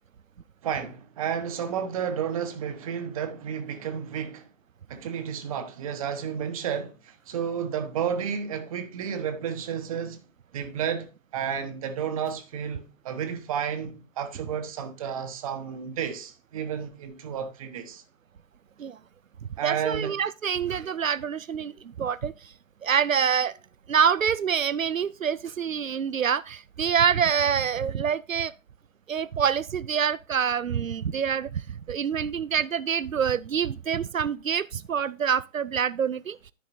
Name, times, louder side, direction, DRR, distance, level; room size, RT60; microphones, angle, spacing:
voice 1, 0.6-4.5 4.9-10.2 10.5-18.0 19.6-20.2, right 8 dB, 25° right, 1.1 m, -31 dB
voice 2, 19.6-21.7 22.0-22.3 22.8-23.5 23.9-28.5 29.1-31.6 31.9-36.4, right 7 dB, 85° right, 0.5 m, -26 dB
13.5 x 4.9 x 2.6 m
figure-of-eight pair, 130°, 39 cm